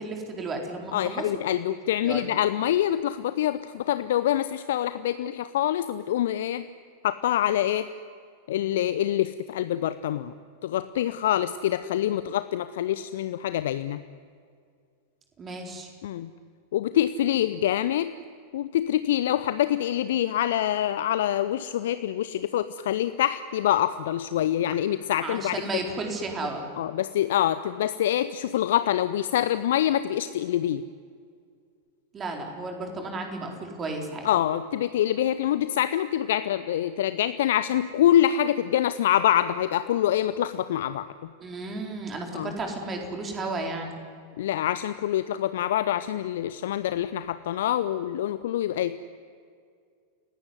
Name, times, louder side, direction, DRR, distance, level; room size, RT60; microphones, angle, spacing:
voice 1, 0.0-1.3 2.0-2.2 15.4-15.9 25.2-26.6 32.1-34.3 41.4-44.0, right 3 dB, 25° right, 2 dB, 4.3 m, -33 dB
voice 2, 0.9-6.7 7.0-7.9 8.5-10.3 10.6-14.0 16.0-16.3 16.7-18.1 18.5-25.6 26.8-30.8 34.2-41.3 42.3-42.5 44.4-49.0, left 11 dB, 55° left, 14 dB, 0.7 m, -25 dB
29.5 x 18.0 x 9.7 m, 2.2 s
figure-of-eight pair, 90°, 0 cm